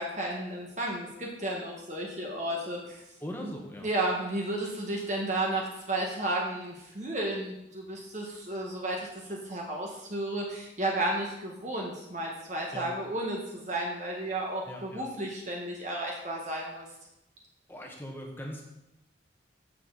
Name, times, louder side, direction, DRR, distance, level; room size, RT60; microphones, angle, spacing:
voice 1, 0.0-3.0 3.8-16.9, right 1 dB, 40° right, -2 dB, 1.8 m, -33 dB
voice 2, 3.2-3.9 12.7-12.9 14.7-15.1 17.7-18.7, equal, 10° left, 0 dB, 1.5 m, -40 dB
15.5 x 6.7 x 4.2 m, 0.86 s
head